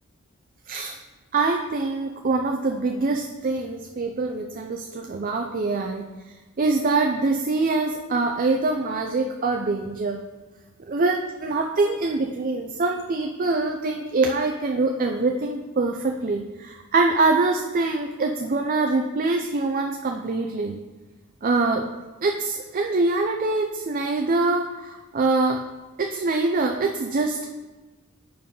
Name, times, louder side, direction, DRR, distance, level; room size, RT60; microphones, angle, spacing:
voice 1, 0.7-1.0 1.3-6.0 6.6-10.2 10.9-20.8 21.4-21.8 22.2-25.6 26.0-27.5, right 3 dB, 40° right, 3 dB, 0.4 m, -24 dB
7.5 x 4.5 x 5.4 m, 1.2 s
head